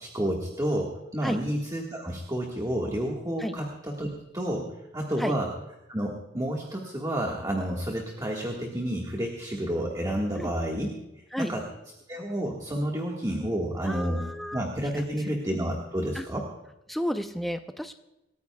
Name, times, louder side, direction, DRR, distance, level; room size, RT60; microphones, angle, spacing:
voice 1, 0.0-4.1 4.3-4.7 4.9-5.5 5.9-10.9 11.4-11.6 12.1-14.2 14.5-16.5, right 1 dB, 20° right, -1 dB, 1.7 m, -30 dB
voice 2, 13.8-14.6 14.9-15.0 16.1-16.2 16.9-17.9, equal, ahead, 6 dB, 0.6 m, -32 dB
27.0 x 14.0 x 2.3 m, 0.94 s
head